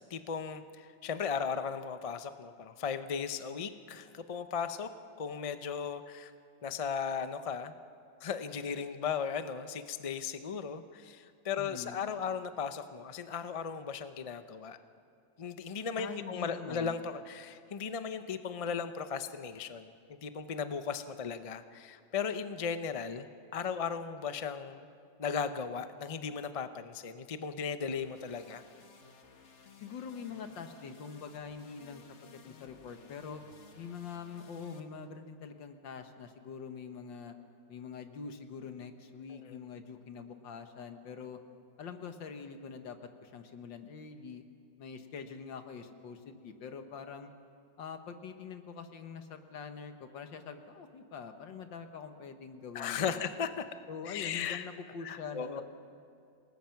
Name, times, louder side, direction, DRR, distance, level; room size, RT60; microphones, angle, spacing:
voice 1, 0.1-4.9 5.2-6.3 6.6-7.7 8.2-14.8 15.4-24.9 25.2-28.6 39.4-39.6 52.7-53.6 54.1-54.6 55.0-55.6, left 6 dB, 60° left, 10 dB, 0.3 m, -36 dB
voice 2, 11.6-12.0 16.0-17.0 29.8-33.4 33.8-37.3 37.7-41.4 41.8-44.4 44.8-47.3 47.8-53.3 53.9-55.6, left 6 dB, 85° left, 7 dB, 2.0 m, -44 dB
sound 1, 27.9-34.8, left 4 dB, 40° left, 1.5 m, -57 dB
28.0 x 19.5 x 5.9 m, 2.4 s
omnidirectional pair, 2.0 m